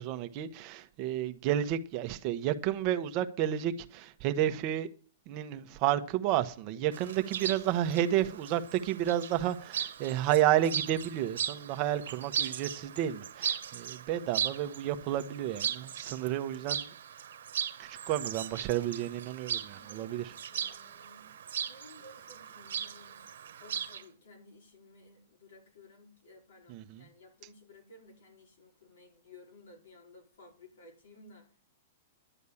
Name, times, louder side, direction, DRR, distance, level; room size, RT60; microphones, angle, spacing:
voice 1, 0.0-4.9 5.3-16.9 17.8-20.3 26.7-27.1, right 12 dB, 35° right, 1.0 m, -31 dB
Chirp tweet, 6.9-24.0, right 8 dB, 85° right, 1.2 m, -38 dB
voice 2, 7.2-7.5 11.5-11.8 19.7-23.3 23.6-31.6, left 2 dB, 80° left, 4.4 m, -56 dB
11.0 x 8.2 x 7.1 m
hypercardioid pair, 150°, 0 cm